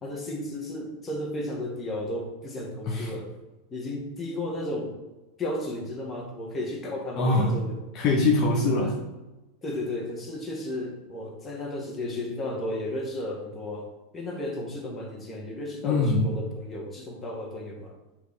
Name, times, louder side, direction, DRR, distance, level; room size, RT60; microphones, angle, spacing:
voice 1, 0.0-3.3 3.7-5.0 5.4-7.8 9.6-18.0, left 1 dB, 25° left, 0 dB, 1.9 m, -34 dB
voice 2, 7.2-7.6 7.9-9.0 15.8-16.3, left 2 dB, 45° left, -2 dB, 1.3 m, -23 dB
6.8 x 3.9 x 5.1 m, 1.1 s
hypercardioid pair, 110°, 0 cm